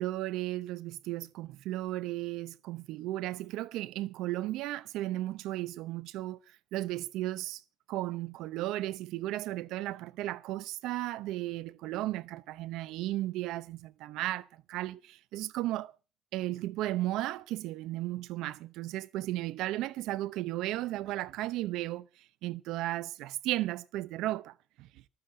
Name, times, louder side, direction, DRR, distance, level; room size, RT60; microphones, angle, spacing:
voice 1, 0.0-6.4 6.7-7.6 7.9-15.9 16.3-22.1 22.4-24.9, right 16 dB, 85° right, 0.7 m, -35 dB
14.5 x 13.0 x 4.9 m
cardioid pair, 120°, 0 cm